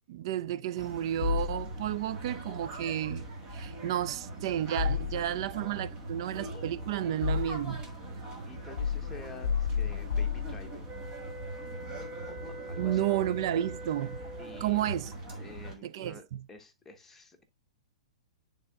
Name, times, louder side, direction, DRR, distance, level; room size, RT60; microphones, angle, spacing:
voice 1, 0.1-3.3 3.5-7.8 12.8-14.2 14.6-15.1 15.8-16.4, right 12 dB, 55° right, 0.4 m, -32 dB
sound 1, 0.8-15.8, right 1 dB, 30° right, 1.7 m, -42 dB
sound 2, 1.2-2.1 4.8-5.6 6.5-7.9 8.8-11.0, left 7 dB, 70° left, 0.6 m, -32 dB
voice 2, 8.4-10.9 12.3-12.4 12.7-13.1 14.4-14.9 15.3-17.4, left 2 dB, 10° left, 1.1 m, -49 dB
sound 3, 10.8-14.8, right 2 dB, 10° right, 1.2 m, -44 dB
10.5 x 3.7 x 2.4 m
figure-of-eight pair, 110°, 3 cm